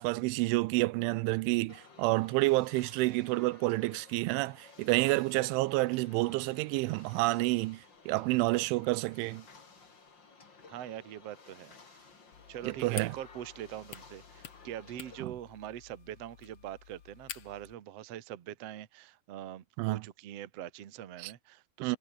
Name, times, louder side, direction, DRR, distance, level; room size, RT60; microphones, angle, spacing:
voice 1, 0.0-9.4 12.6-13.1 19.8-20.0 21.2-21.3 21.8-22.0, right 22 dB, 90° right, 3.1 m, -29 dB
sound 1, 1.7-15.2, left 4 dB, 30° left, 3.1 m, -56 dB
voice 2, 10.7-12.0 12.5-22.0, right 11 dB, 70° right, 1.5 m, -43 dB
sound 2, 12.3-17.7, left 9 dB, 65° left, 1.4 m, -49 dB
omnidirectional pair, 5.4 m